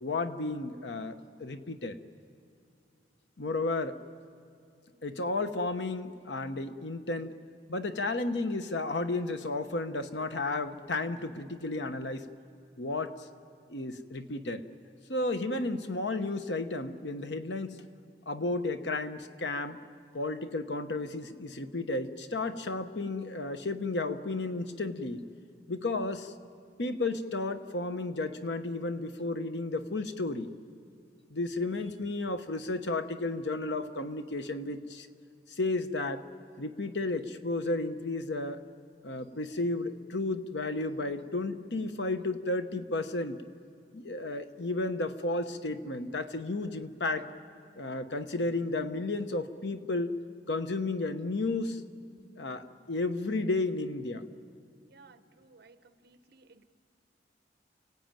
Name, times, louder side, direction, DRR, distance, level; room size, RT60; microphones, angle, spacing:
voice 1, 0.0-2.0 3.4-4.0 5.0-7.3 7.7-12.3 12.8-13.3 13.7-14.6 15.1-17.8 18.3-19.8 20.1-25.2 25.7-26.3 26.8-30.5 31.3-35.1 35.5-36.2 36.6-38.6 39.0-43.4 43.9-47.3 47.8-50.2 50.5-51.8 52.4-54.2, left 2 dB, 80° left, 9 dB, 1.1 m, -33 dB
voice 2, 54.8-56.6, right 3 dB, 60° right, 11 dB, 1.0 m, -58 dB
29.5 x 17.0 x 9.1 m, 2.3 s
head